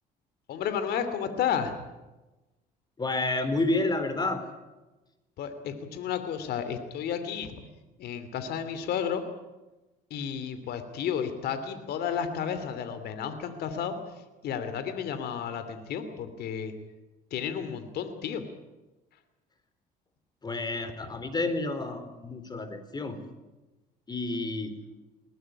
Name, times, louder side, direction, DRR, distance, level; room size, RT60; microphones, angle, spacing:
voice 1, 0.5-1.7 5.4-7.7 8.0-9.2 10.1-13.9 14.4-16.7 17.3-18.4, left 8 dB, 70° left, 10 dB, 2.8 m, -32 dB
voice 2, 3.0-4.4 20.4-23.2 24.1-24.7, left 2 dB, 25° left, 10 dB, 3.9 m, -30 dB
21.5 x 18.5 x 9.9 m, 1.1 s
cardioid pair, 110°, 17 cm